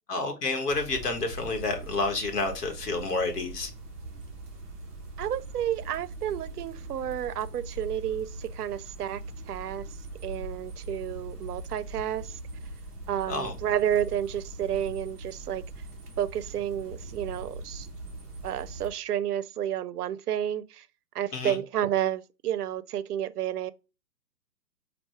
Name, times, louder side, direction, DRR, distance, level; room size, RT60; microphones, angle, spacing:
voice 1, 0.1-3.7 13.3-13.5 21.3-21.6, left 3 dB, 70° left, 1.5 m, -29 dB
sound 1, 0.7-18.9, right 2 dB, 10° right, 0.4 m, -41 dB
voice 2, 5.2-9.2 9.5-9.9 10.2-12.4 13.1-15.6 16.2-17.9 18.4-20.8 21.1-23.7, right 10 dB, 70° right, 0.5 m, -31 dB
4.4 x 2.6 x 4.3 m
hypercardioid pair, 125°, 48 cm